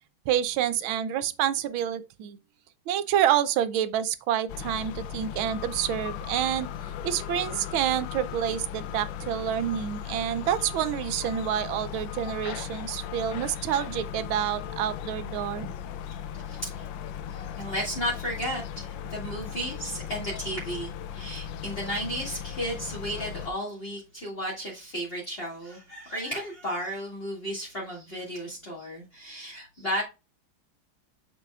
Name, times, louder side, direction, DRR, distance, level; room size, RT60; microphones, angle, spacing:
voice 1, 0.3-2.4 2.9-6.7 7.0-15.8, right 10 dB, 80° right, 1.5 m, -28 dB
sound 1, 4.5-23.5, left 9 dB, 75° left, 1.2 m, -37 dB
voice 2, 16.5-16.9 17.3-30.0, equal, 30° left, 2.3 m, -34 dB
7.0 x 6.8 x 2.4 m
omnidirectional pair, 2.2 m